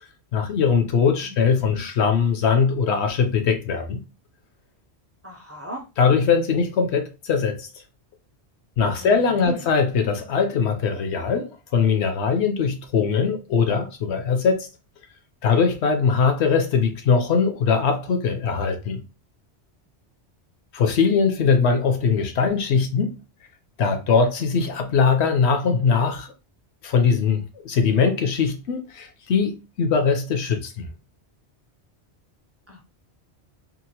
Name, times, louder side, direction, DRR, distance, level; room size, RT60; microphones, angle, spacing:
voice 1, 0.3-4.0 6.0-7.7 8.8-14.7 15.4-19.0 20.7-23.1 23.8-26.3 26.8-30.9, left 5 dB, 75° left, 0.9 m, -21 dB
voice 2, 5.2-5.8 9.0-9.7 32.7-32.8, equal, 20° right, 0.4 m, -36 dB
2.8 x 2.4 x 2.8 m
omnidirectional pair, 1.2 m